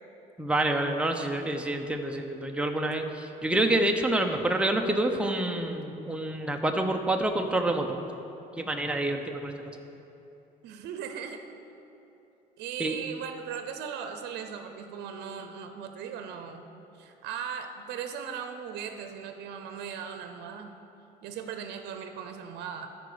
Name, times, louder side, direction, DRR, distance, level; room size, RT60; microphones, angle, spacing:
voice 1, 0.4-8.0 8.6-9.6 12.8-13.0, right 1 dB, 5° right, 3 dB, 0.7 m, -27 dB
voice 2, 10.6-11.4 12.6-16.7 17.0-20.7 21.2-22.9, right 7 dB, 80° right, 6 dB, 0.7 m, -38 dB
13.0 x 4.8 x 5.0 m, 2.9 s
cardioid pair, 110°, 17 cm